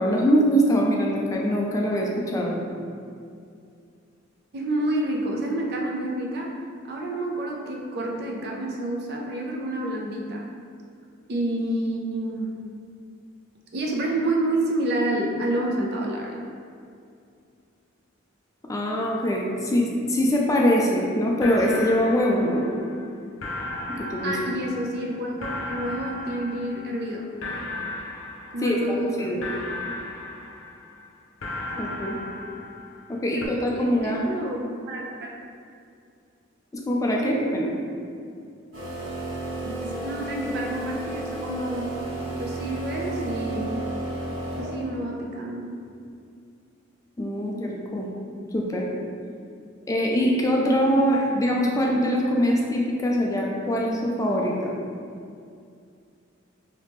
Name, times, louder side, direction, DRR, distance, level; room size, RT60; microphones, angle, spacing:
voice 1, 0.0-2.6 18.7-22.6 23.9-24.4 28.6-29.5 31.8-32.2 33.1-34.2 36.7-37.7 47.2-48.1 48.5-48.8 49.9-54.7, equal, 15° left, -2 dB, 0.3 m, -23 dB
voice 2, 4.5-6.5 6.9-10.5 11.3-12.5 13.7-16.4 24.2-27.3 28.5-29.6 31.7-31.9 33.3-34.6 34.9-35.4 39.6-41.9 42.4-43.9 44.5-45.7, right 1 dB, 55° right, -1 dB, 0.5 m, -29 dB
sound 1, 21.0-21.1 21.4-23.0 23.4-27.1 27.4-29.0 29.4-31.0 31.4-33.1 33.4-33.5, left 2 dB, 75° left, 0.6 m, -36 dB
sound 2, 38.7-45.1, right 2 dB, 75° right, 1.3 m, -32 dB
3.4 x 2.8 x 3.0 m, 2.4 s
head